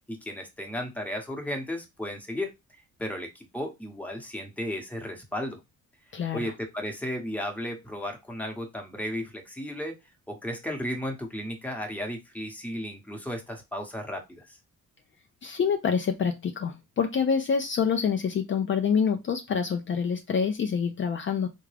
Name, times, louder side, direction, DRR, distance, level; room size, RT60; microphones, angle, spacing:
voice 1, 0.1-2.5 3.0-5.6 6.3-10.0 10.3-14.6, equal, 5° left, 2 dB, 1.1 m, -34 dB
voice 2, 6.1-6.5 15.4-21.5, left 6 dB, 40° left, 6 dB, 0.5 m, -26 dB
3.6 x 2.1 x 3.3 m, 0.21 s
cardioid pair, 90°, 30 cm